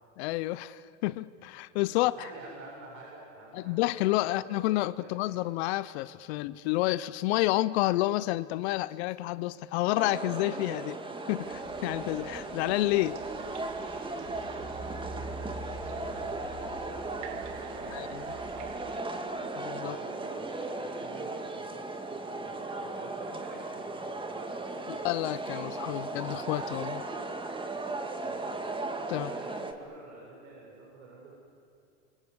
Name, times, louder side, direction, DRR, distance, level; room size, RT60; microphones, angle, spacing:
voice 1, 0.2-2.3 3.5-11.0 11.3-13.2 17.9-18.2 19.5-20.0 25.0-27.1 29.1-29.3, left 18 dB, 60° left, 17 dB, 0.8 m, -29 dB
voice 2, 2.0-4.7 5.0-5.4 15.1-18.7 19.8-25.1 25.8-26.0 28.2-28.7 29.0-31.3, right 3 dB, 75° right, -3 dB, 7.3 m, -48 dB
sound 1, 9.9-29.7, right 2 dB, 15° right, 2.1 m, -37 dB
sound 2, 11.4-19.0, right 3 dB, 50° right, 2.3 m, -46 dB
28.5 x 24.5 x 8.2 m, 2.4 s
hypercardioid pair, 100°, 37 cm